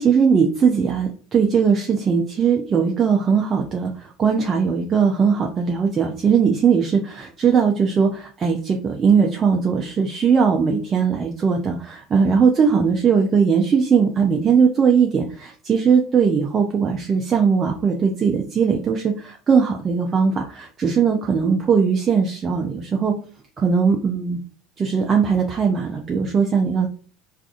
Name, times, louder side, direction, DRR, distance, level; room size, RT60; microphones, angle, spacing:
voice 1, 0.0-23.2 23.6-24.4 24.8-26.9, right 6 dB, 35° right, 1 dB, 0.5 m, -19 dB
3.4 x 2.5 x 2.4 m, 0.41 s
hypercardioid pair, 75°, 0 cm